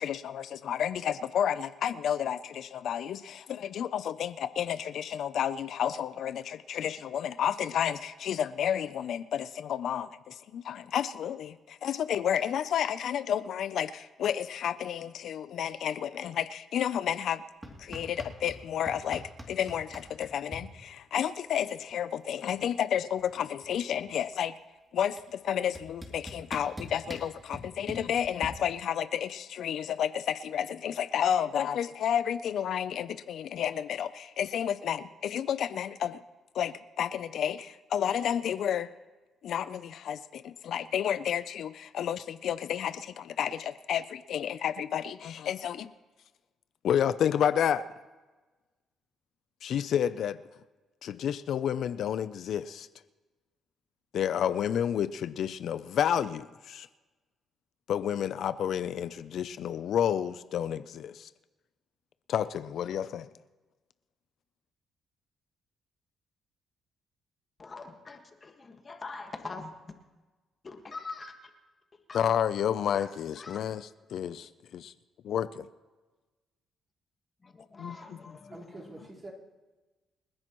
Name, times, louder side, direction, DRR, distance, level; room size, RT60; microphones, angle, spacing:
voice 1, 0.0-17.4 17.8-24.5 24.9-36.2 36.5-38.9 39.4-45.9 46.8-47.9 49.6-50.4 51.0-52.9 54.1-56.9 57.9-61.3 62.3-63.3 72.1-74.9 75.2-75.7 77.8-78.0, left 9 dB, 70° left, 14 dB, 0.5 m, -31 dB
sound 1, 17.6-18.6 18.9-20.6 21.9-22.0 22.2-22.6 22.9-24.3 25.2-25.3 25.7-28.5, equal, 15° right, 2.7 m, -43 dB
voice 2, 67.6-69.7 70.6-71.5 72.1-72.2 72.9-73.6 77.4-79.1, left 3 dB, 35° left, 4 dB, 1.6 m, -44 dB
voice 3, 78.5-79.3, right 2 dB, 35° right, -4 dB, 4.3 m, -45 dB
28.0 x 10.5 x 3.1 m, 1.2 s
cardioid pair, 90°, 0 cm